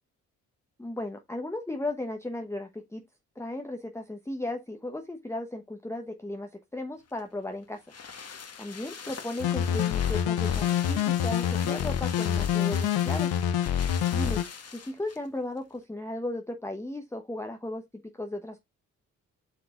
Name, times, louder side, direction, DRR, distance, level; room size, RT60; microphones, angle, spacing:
voice 1, 0.8-3.0 3.4-7.8 8.6-13.3 14.1-14.4 14.7-17.8 18.1-18.6, left 2 dB, 5° left, 1.0 m, -35 dB
sound 1, 7.1-15.3 15.6-15.7, left 6 dB, 40° left, 1.3 m, -43 dB
sound 2, 9.4-14.4, left 9 dB, 65° left, 0.8 m, -26 dB
8.4 x 5.8 x 2.4 m
hypercardioid pair, 45°, 39 cm